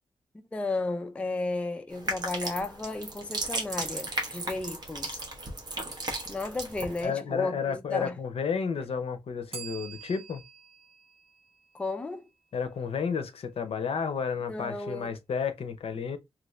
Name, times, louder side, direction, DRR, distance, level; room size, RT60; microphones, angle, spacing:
voice 1, 0.5-5.2 6.3-8.1 11.7-12.3 14.5-15.1, left 2 dB, 10° left, 0.3 m, -33 dB
sound 1, 1.9-7.0, right 2 dB, 40° right, 1.0 m, -35 dB
voice 2, 7.0-10.4 12.5-16.2, left 6 dB, 65° left, 0.6 m, -31 dB
Bell, 9.5-12.3, right 7 dB, 65° right, 1.0 m, -47 dB
3.0 x 2.5 x 3.1 m
wide cardioid pair, 155°, 11 cm